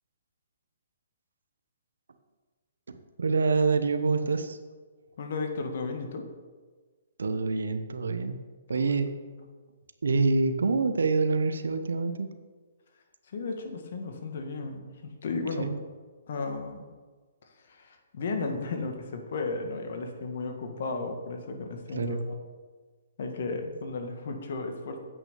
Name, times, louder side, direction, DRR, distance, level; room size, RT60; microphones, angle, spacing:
voice 1, 2.9-4.6 7.2-8.4 8.7-9.1 10.0-12.3 15.6-15.8 21.9-22.2, right 4 dB, 80° right, 9 dB, 0.9 m, -26 dB
voice 2, 5.2-6.3 8.7-9.0 9.3-9.4 13.3-15.7 16.3-16.9 17.7-22.4 23.2-25.0, left 3 dB, 60° left, 4 dB, 1.7 m, -34 dB
8.8 x 6.0 x 6.7 m, 1.4 s
hypercardioid pair, 135°, 0 cm